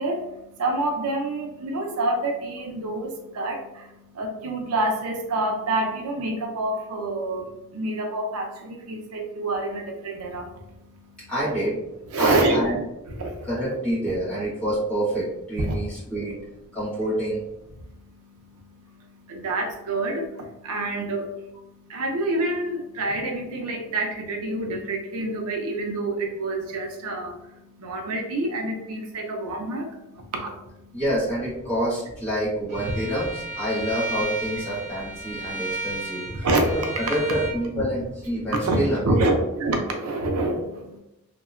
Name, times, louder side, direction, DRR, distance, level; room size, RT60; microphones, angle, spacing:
voice 1, 0.0-10.6 10.9-11.3 12.1-12.6 13.1-13.5 15.6-15.8 17.8-21.5 21.9-31.0 36.3-36.7 37.7-37.8 38.6-41.0, right 2 dB, 80° right, 3 dB, 0.4 m, -27 dB
voice 2, 11.3-11.8 12.2-12.8 13.5-16.4 16.7-17.4 30.9-36.5 36.7-39.2, right 1 dB, 5° left, -10 dB, 1.1 m, -27 dB
Bowed string instrument, 32.7-37.6, right 2 dB, 35° right, 0.6 m, -34 dB
2.7 x 2.1 x 2.4 m, 0.88 s
head